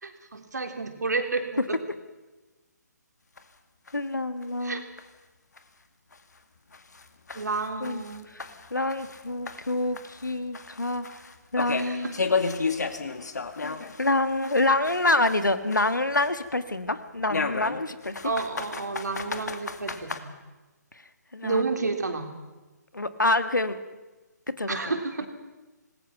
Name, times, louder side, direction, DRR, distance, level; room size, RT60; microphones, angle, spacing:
voice 1, 0.0-1.8 4.6-4.9 7.3-8.3 11.8-12.3 18.2-20.3 21.4-22.3 24.7-25.3, right 3 dB, 70° right, 5 dB, 3.6 m, -31 dB
sound 1, 3.4-3.5 3.9-4.0 4.4-4.5 5.0-5.1 5.6-5.7 6.1-6.2 6.7-9.2 9.5-14.1 14.4-16.5 17.3-20.2, left 4 dB, 65° left, 2.1 m, -33 dB
voice 2, 3.9-4.9 7.8-11.2 11.5-12.1 13.6-18.3 21.3-21.6 22.9-23.8 24.6-24.9, left 2 dB, 85° left, 10 dB, 1.8 m, -27 dB
26.5 x 20.5 x 5.9 m, 1.2 s
figure-of-eight pair, 140°, 10 cm